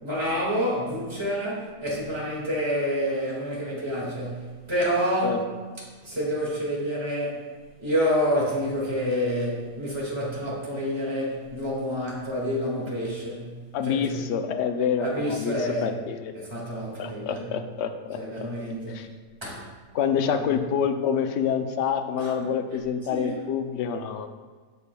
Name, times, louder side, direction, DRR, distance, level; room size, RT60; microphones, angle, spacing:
voice 1, 0.0-5.5 5.8-7.5 7.8-13.6 13.8-14.2 15.0-16.0 16.3-17.5 18.2-19.0 19.4-19.7 20.3-20.6 22.2-22.3 23.1-23.4, equal, 15° right, -5 dB, 1.8 m, -28 dB
voice 2, 13.7-15.5 15.8-16.3 17.0-18.2 18.9-19.1 19.9-24.3, left 7 dB, 70° left, 7 dB, 0.6 m, -27 dB
8.2 x 7.0 x 2.2 m, 1.4 s
omnidirectional pair, 1.6 m